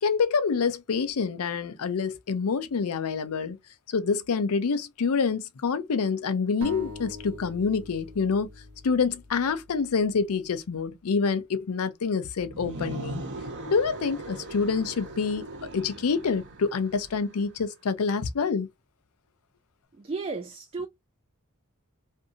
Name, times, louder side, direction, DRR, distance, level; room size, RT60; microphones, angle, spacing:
voice 1, 0.0-3.6 3.9-8.5 8.8-13.2 13.7-18.7, left 5 dB, 75° left, 0.5 m, -27 dB
sound 1, 6.6-10.2, equal, 85° right, 0.8 m, -42 dB
sound 2, 12.4-17.5, right 2 dB, 50° right, 0.8 m, -39 dB
voice 2, 19.9-20.9, right 4 dB, 25° right, 0.3 m, -34 dB
2.6 x 2.6 x 2.3 m
head